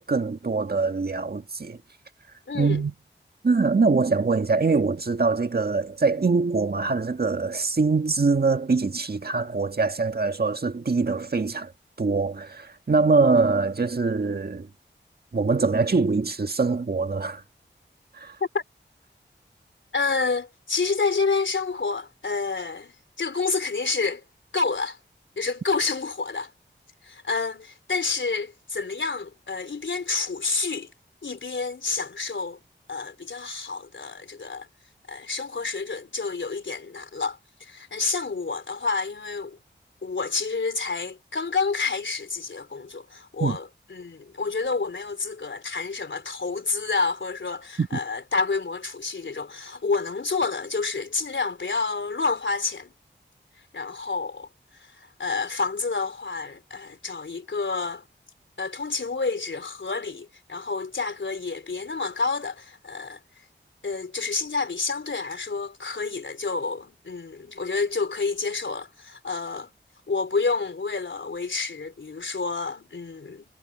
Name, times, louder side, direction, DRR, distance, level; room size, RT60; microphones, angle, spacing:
voice 1, 0.0-1.8 2.5-2.9 3.4-11.7 12.0-14.7 15.3-17.4 18.1-18.4 43.4-43.6 47.8-48.0, right 4 dB, 55° right, 1.6 m, -23 dB
voice 2, 2.5-2.8 18.5-18.6 19.9-24.2 24.5-25.0 25.4-26.5 27.0-30.9 31.2-32.6 32.9-34.7 35.1-39.6 40.0-52.9 53.7-58.1 58.6-63.2 63.8-69.7 70.1-73.5, left 4 dB, 80° left, 3.5 m, -29 dB
wide cardioid pair, 65°, 19 cm